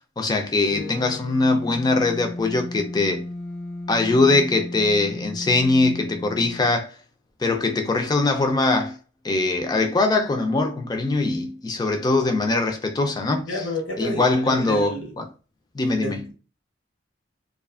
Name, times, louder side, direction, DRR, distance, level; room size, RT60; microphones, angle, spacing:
voice 1, 0.2-3.2 3.9-6.9 7.4-9.0 9.2-13.7 14.0-15.3 15.7-16.3, left 3 dB, 20° left, 0.3 m, -22 dB
sound 1, 0.7-6.8, left 2 dB, 60° left, 0.7 m, -35 dB
voice 2, 13.5-15.1 16.0-16.3, equal, 80° left, 1.0 m, -30 dB
2.4 x 2.3 x 2.3 m
head